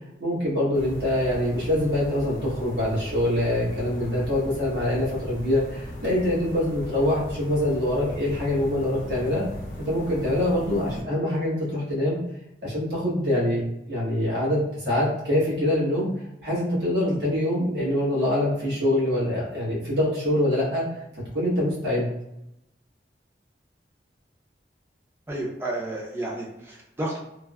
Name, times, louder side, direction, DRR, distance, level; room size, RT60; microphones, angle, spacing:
voice 1, 0.2-9.4 9.8-12.2 12.6-13.6 13.9-16.1 16.4-20.9 21.3-22.1, left 1 dB, 65° right, -6 dB, 1.1 m, -24 dB
sound 1, 0.7-11.0, left 1 dB, 50° left, 0.5 m, -38 dB
voice 2, 25.3-27.2, right 1 dB, 15° right, -3 dB, 0.5 m, -31 dB
3.3 x 2.0 x 2.3 m, 0.83 s
head